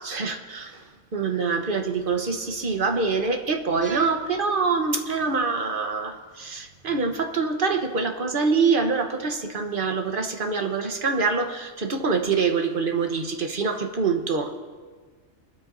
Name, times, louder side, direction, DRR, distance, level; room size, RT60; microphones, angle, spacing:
voice 1, 0.0-14.5, right 4 dB, 45° right, 4 dB, 1.2 m, -25 dB
24.0 x 13.0 x 2.6 m, 1.5 s
omnidirectional pair, 1.4 m